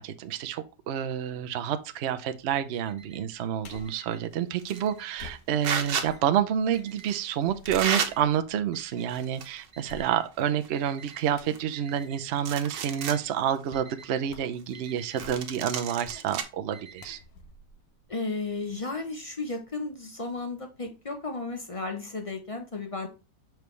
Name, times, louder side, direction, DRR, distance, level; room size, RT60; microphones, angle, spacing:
voice 1, 0.0-17.2, right 9 dB, 70° right, 0.6 m, -29 dB
Alarm, 2.4-3.4 3.7-5.3 5.7-6.4 6.7-11.2 11.7-12.3 12.6-13.3 13.5-17.2, right 5 dB, 40° right, 1.7 m, -51 dB
sound 1, 3.6-4.1 5.2-7.0 7.3-8.4 8.9-9.0 9.9-10.5 11.4-11.7 13.7-13.9 14.3-14.6 15.0-15.6 16.0-16.3 17.0-18.7 19.1-19.2, left 2 dB, 65° left, 1.4 m, -48 dB
sound 2, 4.6-4.9 5.6-6.1 7.0-7.1 7.6-8.1 9.0-9.7 10.0-10.1 10.6-10.7 11.0-12.0 12.4-13.2 13.7-13.8 15.2-16.4, right 7 dB, 90° right, 1.5 m, -31 dB
voice 2, 18.1-23.1, left 3 dB, 40° left, 0.4 m, -34 dB
6.9 x 4.6 x 3.1 m
omnidirectional pair, 1.8 m